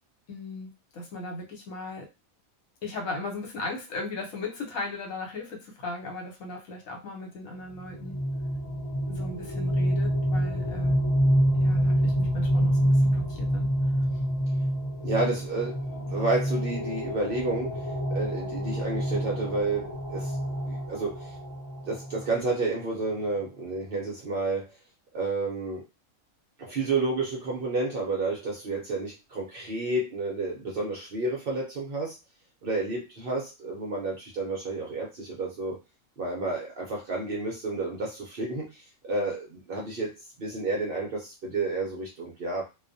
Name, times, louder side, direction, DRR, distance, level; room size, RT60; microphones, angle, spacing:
voice 1, 0.3-2.1 2.8-8.2 9.1-11.0 11.5-13.7, left 2 dB, 75° left, 1 dB, 1.2 m, -37 dB
sound 1, 7.7-22.4, equal, 40° left, 0.3 m, -27 dB
voice 2, 15.0-20.4 20.7-21.4 21.8-24.8 25.1-25.8 26.6-32.2 32.6-35.8 36.2-42.7, right 3 dB, 60° right, -2 dB, 0.6 m, -30 dB
2.3 x 2.2 x 2.5 m, 0.26 s
omnidirectional pair, 1.4 m